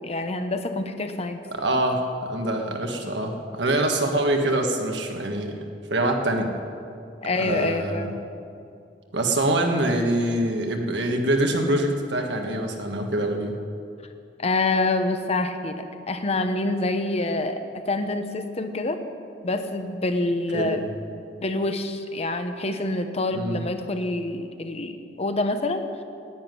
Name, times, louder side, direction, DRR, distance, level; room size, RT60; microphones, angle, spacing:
voice 1, 0.0-1.4 7.2-8.1 14.4-19.0 19.4-20.8 21.4-25.9, left 2 dB, 35° left, 7 dB, 0.9 m, -26 dB
voice 2, 1.5-2.0 2.3-5.5 5.9-6.5 7.4-8.1 9.1-13.5 20.5-20.9 23.3-23.6, right 1 dB, 70° right, 3 dB, 1.5 m, -24 dB
10.5 x 9.5 x 9.4 m, 2.5 s
head